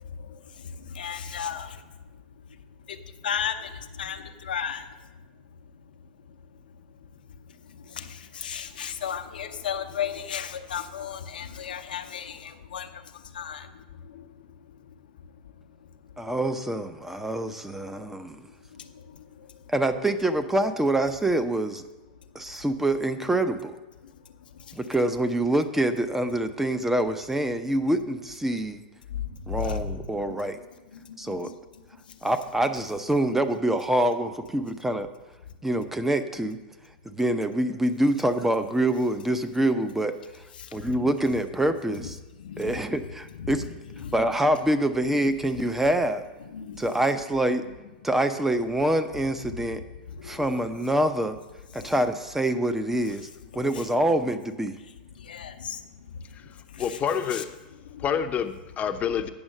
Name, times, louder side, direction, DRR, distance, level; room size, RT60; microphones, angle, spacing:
voice 1, 0.8-1.8 2.9-4.9 7.8-13.0 13.3-13.7 14.0-14.2 18.7-19.2 29.1-30.0 30.3-30.4 30.9-31.3 40.6-40.9 42.4-42.8 43.4-43.5 44.0-44.2 46.5-46.8 47.7-47.8 50.2-50.4 55.2-55.8 56.7-57.0 57.3-57.4 57.9-58.0, left 8 dB, 80° left, 7 dB, 0.8 m, -34 dB
voice 2, 16.2-18.4 19.7-21.8 22.3-23.8 24.7-28.8 29.5-30.6 31.2-31.5 32.2-35.1 35.6-36.6 37.0-40.2 40.7-42.2 42.6-43.6 44.1-46.2 46.8-47.6 48.0-49.8 50.2-51.4 51.7-53.3 53.5-54.8, right 1 dB, 5° right, 9 dB, 0.7 m, -25 dB
voice 3, 56.8-57.5 58.0-59.3, left 8 dB, 30° left, 8 dB, 0.7 m, -27 dB
8.8 x 6.2 x 6.4 m, 1.1 s
hypercardioid pair, 100°, 5 cm